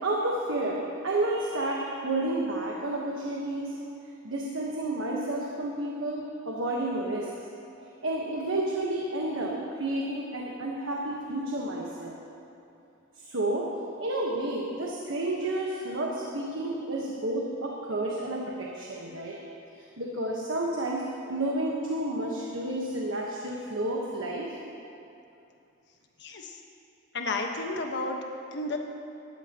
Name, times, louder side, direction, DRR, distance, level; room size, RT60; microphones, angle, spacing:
voice 1, 0.0-3.7 4.2-7.5 8.0-12.2 13.2-13.7 14.0-19.4 19.8-24.6, right 1 dB, 85° right, -2 dB, 1.3 m, -31 dB
voice 2, 26.2-26.6 27.1-28.2 28.5-28.8, left 2 dB, 60° left, 2 dB, 1.3 m, -32 dB
19.0 x 13.0 x 3.0 m, 2.7 s
head